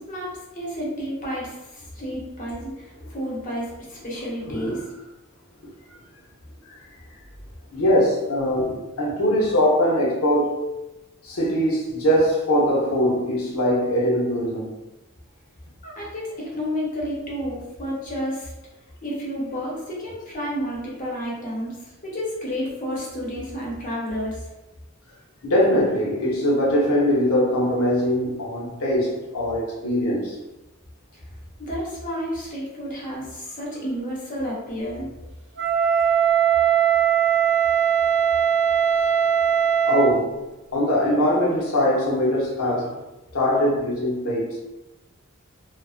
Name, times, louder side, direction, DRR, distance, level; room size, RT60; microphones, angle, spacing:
voice 1, 0.0-4.8 15.8-18.5 19.0-24.4 31.6-35.1, equal, 40° left, 0.8 m, -31 dB
voice 2, 4.4-4.8 7.7-10.7 11.2-14.7 25.4-30.4 39.8-40.4 40.7-43.0 43.3-44.6, equal, 85° left, 0.8 m, -22 dB
Wind instrument woodwind instrument, 35.6-40.2, right 8 dB, 55° right, 0.4 m, -20 dB
2.4 x 2.3 x 2.3 m
head